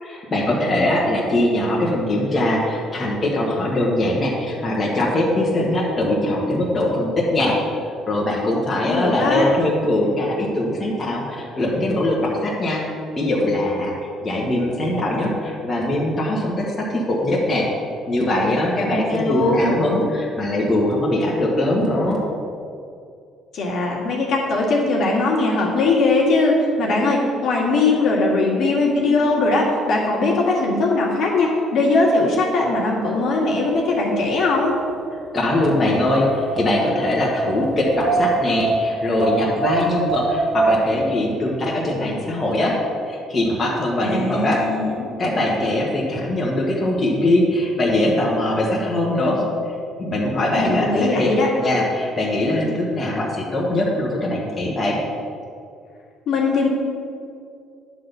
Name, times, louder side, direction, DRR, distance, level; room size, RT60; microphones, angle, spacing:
voice 1, 0.0-7.6 8.1-12.8 13.1-13.9 14.2-17.7 18.1-22.2 35.3-42.7 43.1-44.6 45.2-49.4 50.0-51.3 51.6-55.0, left 1 dB, 30° left, -4 dB, 1.6 m, -21 dB
voice 2, 8.8-9.5 18.9-19.7 23.5-34.8 44.0-45.1 50.6-51.5 56.3-56.7, left 3 dB, 60° left, -3 dB, 2.0 m, -20 dB
Wind, 33.2-41.1, right 2 dB, 75° right, 0.9 m, -25 dB
10.0 x 3.9 x 6.9 m, 2.4 s
cardioid pair, 95°, 0 cm